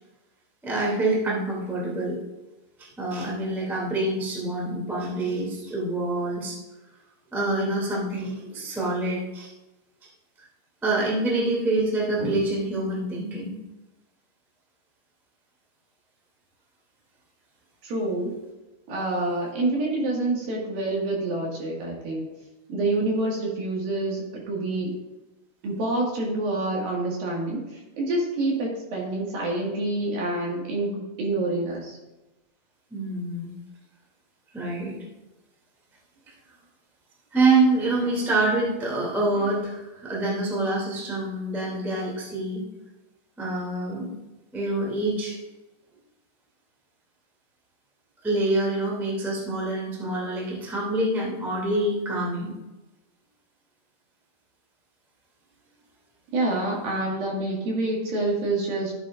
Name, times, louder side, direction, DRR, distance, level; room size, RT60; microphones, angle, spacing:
voice 1, 0.6-2.2 2.8-6.6 7.3-9.5 10.8-13.5 32.9-33.5 34.5-34.9 37.3-42.6 43.4-44.1 44.5-45.4 48.2-52.5, right 2 dB, ahead, -4 dB, 0.8 m, -26 dB
voice 2, 17.8-18.3 18.9-22.3 22.7-25.0 25.6-27.6 28.0-32.0 56.3-59.0, right 2 dB, 60° right, -3 dB, 3.4 m, -27 dB
13.0 x 8.3 x 2.5 m, 1.0 s
omnidirectional pair, 5.1 m